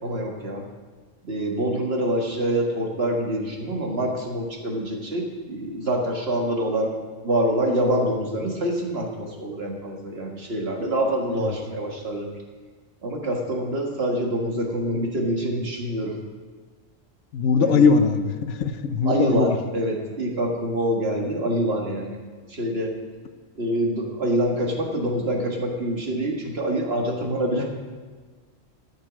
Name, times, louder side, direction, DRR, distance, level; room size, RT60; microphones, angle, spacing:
voice 1, 0.0-0.6 1.2-6.9 7.2-12.3 13.0-16.2 17.6-17.9 19.1-22.2 22.5-22.9 23.6-27.6, right 1 dB, 55° right, 0 dB, 1.9 m, -26 dB
voice 2, 17.3-19.6, left 5 dB, 70° left, 9 dB, 1.0 m, -21 dB
13.5 x 6.6 x 6.1 m, 1.5 s
omnidirectional pair, 1.3 m